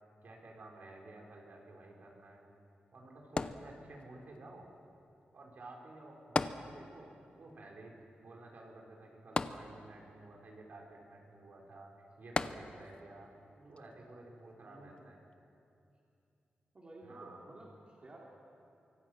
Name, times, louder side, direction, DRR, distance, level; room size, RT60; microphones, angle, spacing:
voice 1, 0.2-2.5 2.9-4.7 5.3-7.1 7.4-11.9 12.2-13.3 13.7-15.2 17.0-17.4, right 2 dB, 55° right, 0 dB, 4.1 m, -53 dB
sound 1, 3.4-4.3 6.4-7.2 7.5-7.6 9.4-10.2 12.4-13.1 13.8-13.9, left 3 dB, 30° left, 0.7 m, -36 dB
voice 2, 14.6-15.1 16.7-18.3, right 1 dB, 30° right, -4 dB, 3.1 m, -54 dB
24.5 x 24.5 x 6.2 m, 2.7 s
wide cardioid pair, 155°, 4 cm